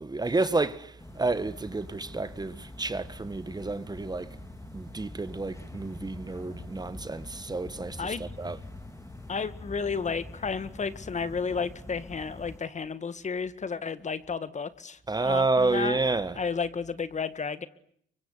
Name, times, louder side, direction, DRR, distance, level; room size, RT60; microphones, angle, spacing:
voice 1, 0.0-4.3 4.7-8.6 15.1-16.4, right 3 dB, 20° right, 1.7 m, -30 dB
sound 1, 1.0-12.6, left 2 dB, 15° left, 2.6 m, -44 dB
voice 2, 9.3-16.0 16.4-17.7, left 5 dB, 35° left, 1.9 m, -32 dB
24.5 x 24.0 x 9.8 m
cardioid pair, 90°, 20 cm